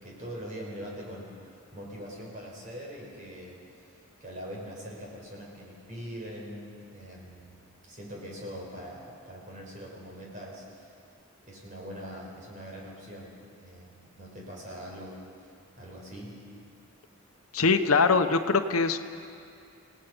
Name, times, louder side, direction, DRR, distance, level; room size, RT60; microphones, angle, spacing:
voice 1, 0.0-3.9 4.2-10.9 11.5-16.4, equal, 35° right, -3 dB, 4.9 m, -43 dB
voice 2, 17.5-19.0, left 4 dB, 85° left, 7 dB, 0.9 m, -22 dB
29.5 x 18.0 x 5.6 m, 2.4 s
head